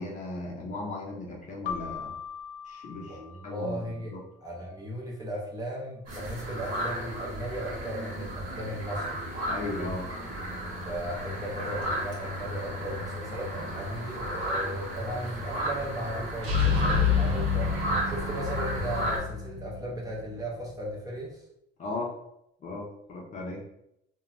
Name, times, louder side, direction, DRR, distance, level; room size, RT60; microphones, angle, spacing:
voice 1, 0.0-2.1 2.7-4.2 9.5-10.1 21.8-22.1 22.6-23.7, left 2 dB, 35° left, -1 dB, 0.6 m, -36 dB
Keyboard (musical), 1.7-4.2, left 7 dB, 90° left, 0.4 m, -40 dB
voice 2, 3.0-4.1 4.4-9.2 10.8-17.7 18.0-21.4, right 1 dB, 20° right, -4 dB, 0.6 m, -36 dB
sound 1, 6.1-19.2, equal, 45° right, 1.1 m, -34 dB
sound 2, 13.5-14.1 16.4-20.2, left 6 dB, 85° right, 0.7 m, -28 dB
3.0 x 2.1 x 2.5 m, 0.78 s
cardioid pair, 145°, 20 cm